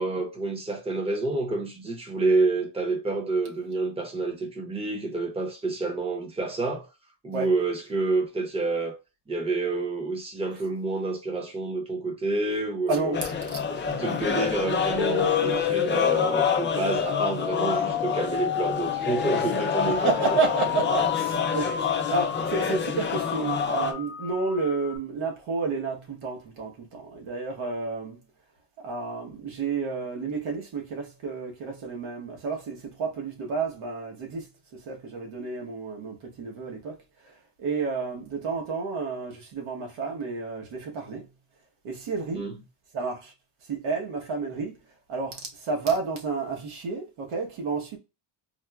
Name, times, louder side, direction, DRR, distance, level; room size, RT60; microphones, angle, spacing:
voice 1, 0.0-6.9 7.2-9.0 9.3-13.2 13.7-20.1 42.3-42.5, right 3 dB, 10° right, 0.6 m, -28 dB
voice 2, 12.9-13.3 14.0-14.2 19.8-28.2 28.8-37.0 37.2-37.3 37.6-41.3 41.8-42.5 42.9-43.3 43.7-44.8 45.1-48.0, right 4 dB, 80° right, 1.1 m, -30 dB
sound 1, 13.1-23.9, left 6 dB, 25° left, 0.3 m, -28 dB
sound 2, 15.0-25.0, left 10 dB, 85° left, 0.7 m, -31 dB
4.2 x 2.0 x 2.3 m
cardioid pair, 135°, 49 cm